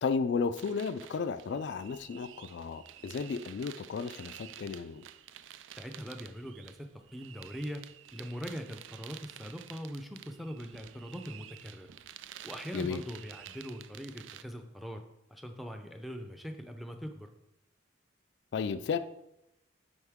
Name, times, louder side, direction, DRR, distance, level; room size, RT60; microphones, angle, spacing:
voice 1, 0.0-5.0 12.7-13.0 18.5-19.0, left 5 dB, 65° left, 11 dB, 0.3 m, -33 dB
sound 1, 0.6-14.4, right 11 dB, 75° right, 0.3 m, -50 dB
voice 2, 5.8-7.8 8.1-11.9 12.4-15.0 15.3-17.3, equal, ahead, 5 dB, 0.5 m, -42 dB
8.0 x 5.4 x 3.6 m, 0.86 s
head